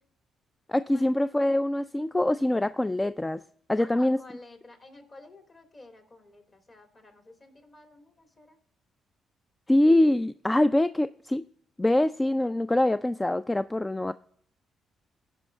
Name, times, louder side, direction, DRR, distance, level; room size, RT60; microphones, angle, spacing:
voice 1, 0.7-3.4 3.7-4.2 9.7-11.4 11.8-14.1, left 1 dB, 15° left, 0.3 m, -24 dB
voice 2, 3.8-8.6, left 2 dB, 40° left, 2.7 m, -51 dB
16.0 x 5.4 x 3.4 m
supercardioid pair, 65°, 0 cm